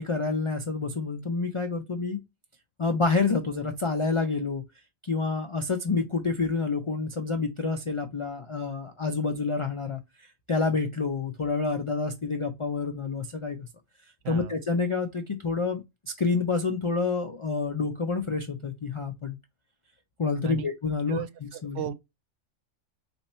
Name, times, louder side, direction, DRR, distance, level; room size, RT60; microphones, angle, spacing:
voice 1, 0.0-2.2 2.8-4.6 5.0-13.7 14.3-19.4 20.2-21.2 21.6-21.8, left 4 dB, 55° left, 0.3 m, -28 dB
voice 2, 14.2-14.6 20.4-20.7 21.1-21.9, right 10 dB, 75° right, 0.9 m, -35 dB
4.4 x 2.8 x 4.1 m
omnidirectional pair, 1.3 m